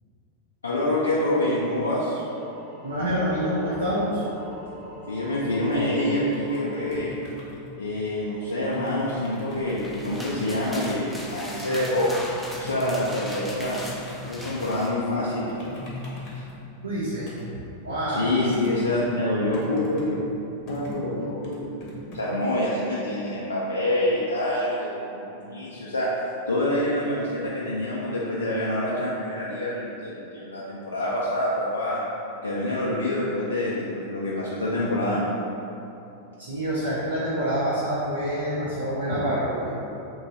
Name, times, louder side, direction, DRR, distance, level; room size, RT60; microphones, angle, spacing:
voice 1, 0.6-2.2 5.1-7.1 7.8-12.2 12.6-13.8 14.2-15.7 18.1-20.2 20.7-21.7 22.1-26.1 26.5-32.0 32.4-35.3, left 1 dB, 75° left, -7 dB, 0.4 m, -26 dB
sound 1, 1.8-6.9, equal, 30° right, 0.9 m, -43 dB
voice 2, 2.8-4.2 16.8-17.3 17.8-18.2 36.4-39.7, equal, 80° right, -9 dB, 0.5 m, -26 dB
sound 2, 4.5-22.2, left 1 dB, 40° left, 0.8 m, -41 dB
sound 3, 9.6-14.9, left 1 dB, 5° right, 0.4 m, -38 dB
3.0 x 2.3 x 3.8 m, 2.9 s
figure-of-eight pair, 90°, 0 cm